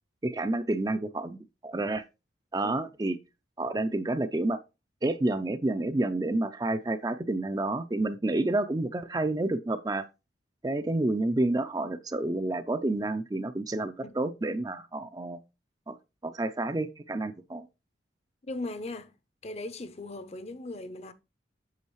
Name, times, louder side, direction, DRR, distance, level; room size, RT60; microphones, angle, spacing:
voice 1, 0.2-2.0 2.5-3.2 3.6-4.6 5.0-10.1 10.6-15.4 15.9-16.0 16.2-17.6, right 2 dB, 20° right, 0.4 m, -29 dB
voice 2, 18.4-19.1 19.4-21.1, left 2 dB, 35° left, 0.7 m, -38 dB
8.4 x 6.4 x 3.1 m
head